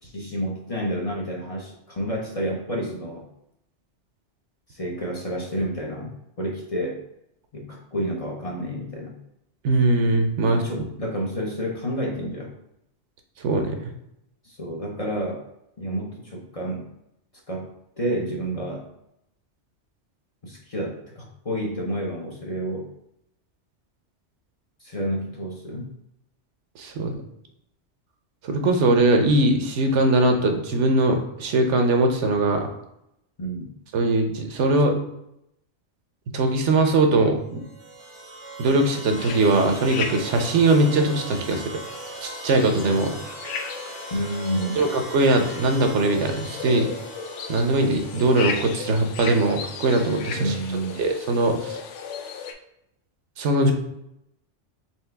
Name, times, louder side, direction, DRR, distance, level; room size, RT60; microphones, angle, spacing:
voice 1, 0.0-3.2 4.7-7.0 7.5-9.2 10.5-12.5 14.4-15.4 15.8-16.9 17.5-18.8 20.4-22.8 24.8-25.9 27.0-27.1 33.4-33.7 44.1-44.9 50.4-51.0, equal, 35° left, -1 dB, 0.7 m, -30 dB
voice 2, 9.6-10.6 13.4-13.8 26.8-27.2 28.5-32.7 33.9-35.0 36.3-37.6 38.6-41.6 42.2-43.1 44.8-46.9 47.5-50.5 51.0-51.8 53.4-53.7, right 2 dB, 75° right, 5 dB, 1.0 m, -21 dB
sound 1, 37.6-48.8, right 2 dB, 30° right, 0.7 m, -39 dB
sound 2, 39.2-52.5, left 6 dB, 85° left, 0.9 m, -36 dB
4.6 x 3.4 x 3.3 m, 0.81 s
omnidirectional pair, 1.2 m